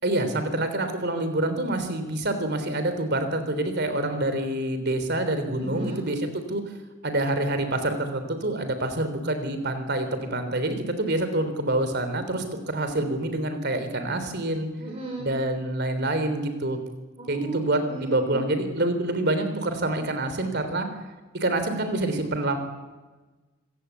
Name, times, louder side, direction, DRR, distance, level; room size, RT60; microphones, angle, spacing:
voice 1, 0.0-6.7 7.0-14.7 15.2-16.8 17.3-20.9 21.3-22.6, right 1 dB, 50° right, 9 dB, 3.5 m, -27 dB
voice 2, 5.6-6.0 14.8-15.3 17.2-18.4, right 2 dB, 30° right, 1 dB, 3.6 m, -36 dB
25.5 x 17.5 x 8.4 m, 1.2 s
head